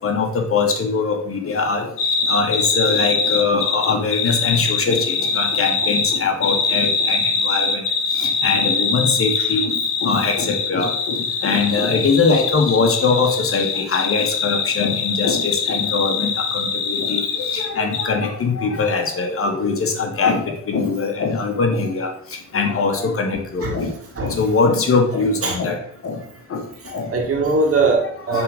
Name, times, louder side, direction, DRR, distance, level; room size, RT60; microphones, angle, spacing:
voice 1, 0.0-1.9 2.3-7.8 8.2-22.1 22.5-23.9 24.2-26.2 26.5-27.1 28.3-28.4, left 4 dB, 45° left, 3 dB, 1.5 m, -22 dB
sound 1, 2.0-17.7 17.9-18.1, left 5 dB, 85° left, 1.2 m, -23 dB
voice 2, 26.8-28.4, right 3 dB, 50° right, 0 dB, 2.1 m, -21 dB
6.7 x 3.8 x 5.1 m, 0.65 s
cardioid pair, 90°, 30 cm